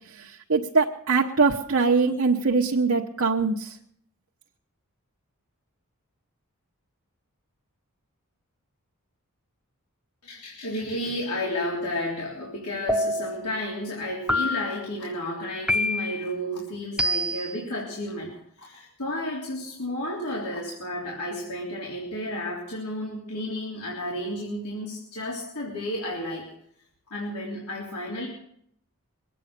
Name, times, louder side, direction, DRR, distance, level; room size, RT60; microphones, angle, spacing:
voice 1, 0.1-3.8, right 4 dB, 60° right, -2 dB, 1.1 m, -23 dB
voice 2, 10.2-26.5 27.1-28.3, left 1 dB, 85° left, -4 dB, 3.5 m, -32 dB
sound 1, 12.9-13.5 14.3-14.9 15.7-16.3 17.0-17.6, left 1 dB, 5° right, 1.0 m, -26 dB
22.5 x 9.1 x 6.8 m, 0.70 s
head